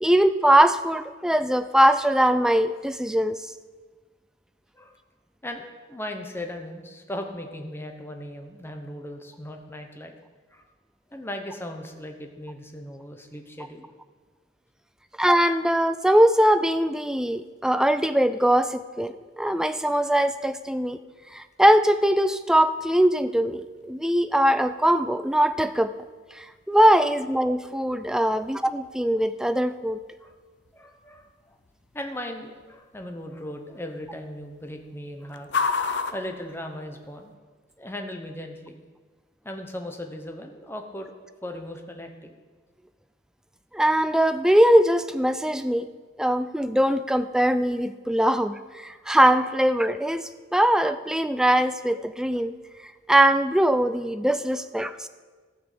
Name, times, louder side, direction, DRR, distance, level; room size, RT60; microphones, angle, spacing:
voice 1, 0.0-3.4 15.2-21.0 21.3-25.9 26.3-30.0 43.7-45.9 46.2-52.5 53.1-55.1, right 1 dB, 5° right, 11 dB, 0.3 m, -21 dB
voice 2, 5.4-10.2 10.5-10.7 11.1-13.9 30.2-30.3 30.7-31.6 31.9-35.5 36.1-37.3 37.8-38.8 39.4-41.1 41.4-42.3 49.0-49.1, left 1 dB, 10° left, 4 dB, 1.0 m, -37 dB
sound 1, 22.5-37.3, left 5 dB, 60° left, 0.7 m, -38 dB
14.5 x 5.9 x 6.8 m, 1.4 s
head